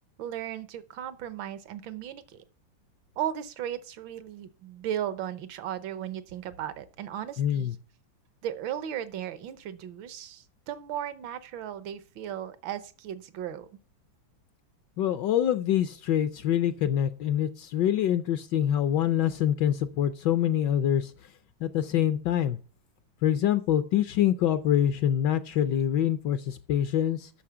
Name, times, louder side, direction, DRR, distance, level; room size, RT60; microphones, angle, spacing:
voice 1, 0.2-2.4 3.2-7.8 8.4-13.7, right 10 dB, 80° right, 1.6 m, -36 dB
voice 2, 7.4-7.7 15.0-21.1 21.6-22.6 23.2-27.3, left 10 dB, 70° left, 1.2 m, -25 dB
8.6 x 6.6 x 6.8 m
omnidirectional pair, 2.1 m